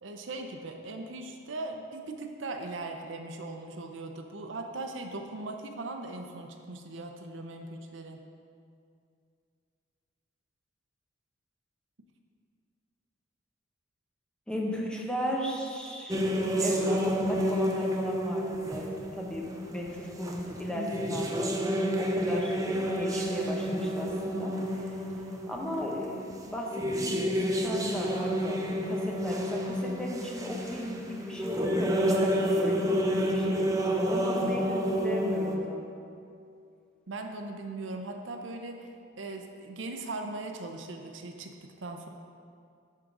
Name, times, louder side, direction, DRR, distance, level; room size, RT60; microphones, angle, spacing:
voice 1, 0.0-8.2 37.1-42.1, right 2 dB, 65° right, 4 dB, 0.6 m, -39 dB
voice 2, 14.5-21.4 22.0-33.6 34.1-35.9, equal, 5° left, -2 dB, 0.9 m, -36 dB
sound 1, 16.1-35.6, equal, 15° right, 0.6 m, -30 dB
10.0 x 3.8 x 6.0 m, 2.4 s
head